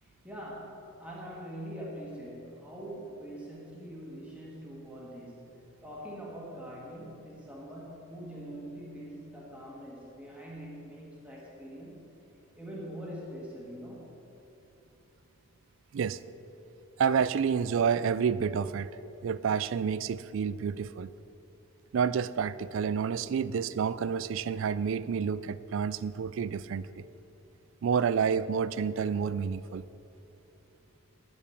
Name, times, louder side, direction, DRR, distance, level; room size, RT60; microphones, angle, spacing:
voice 1, 0.0-12.1 12.6-14.2, equal, 5° right, -5 dB, 1.7 m, -43 dB
voice 2, 17.0-18.9 19.2-21.1 21.9-27.1 27.8-29.8, right 6 dB, 60° right, 17 dB, 0.3 m, -29 dB
12.0 x 5.3 x 8.4 m, 2.9 s
head